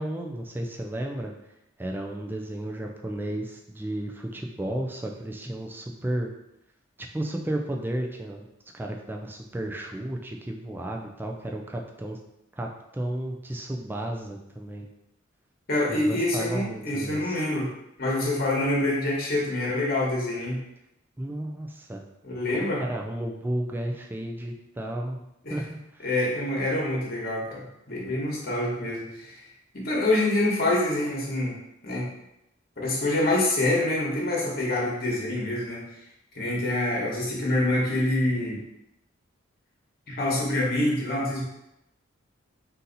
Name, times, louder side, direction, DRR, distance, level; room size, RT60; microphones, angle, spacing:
voice 1, 0.0-1.3 1.8-6.3 7.1-12.2 12.6-14.9 15.9-17.4 21.2-22.0 22.5-25.2 25.5-26.1, right 1 dB, 10° right, 1 dB, 0.3 m, -33 dB
voice 2, 15.7-17.7 18.0-20.6 22.2-22.8 25.4-25.6 26.0-29.4 29.7-31.5 31.8-32.1 32.8-35.8 36.3-38.6 40.1-41.4, left 1 dB, 50° left, -3 dB, 1.2 m, -26 dB
4.1 x 2.6 x 3.9 m, 0.84 s
head